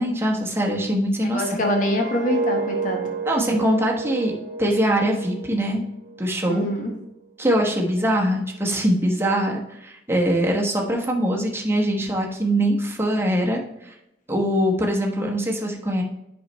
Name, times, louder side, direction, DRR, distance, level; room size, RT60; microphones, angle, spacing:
voice 1, 0.0-1.5 3.2-4.3 4.6-5.8 6.2-6.6 7.4-13.6 13.9-14.0 14.3-16.0, equal, 15° right, -1 dB, 1.1 m, -22 dB
voice 2, 1.3-3.0 6.5-6.9, equal, 45° left, 1 dB, 1.2 m, -24 dB
sound 1, 1.3-6.3 6.7-7.0, right 4 dB, 40° right, 1.3 m, -31 dB
8.2 x 5.5 x 3.1 m, 0.84 s
head